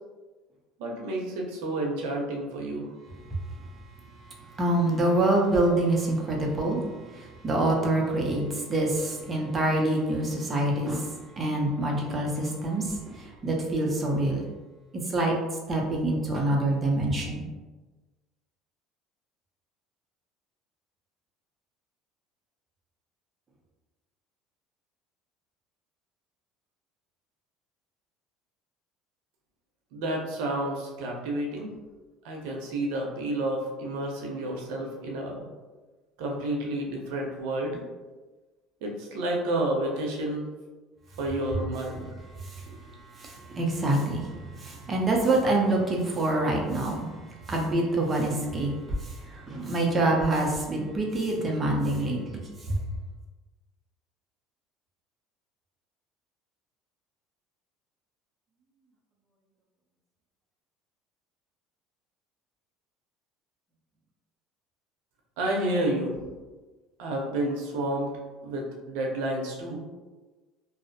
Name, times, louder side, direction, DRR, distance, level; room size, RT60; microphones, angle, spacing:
voice 1, 0.8-2.9 29.9-31.7 32.2-35.4 36.2-37.8 38.8-40.4 41.2-42.1 65.4-66.1 67.0-68.1 68.4-69.8, right 1 dB, 85° right, 0 dB, 0.6 m, -30 dB
voice 2, 4.6-6.8 7.1-14.4 15.1-15.3 15.7-17.4 42.4-42.8 43.2-47.1 47.5-52.4 52.7-52.8, right 2 dB, 25° right, -1 dB, 0.5 m, -26 dB
2.5 x 2.0 x 2.6 m, 1.2 s
cardioid pair, 130°, 0 cm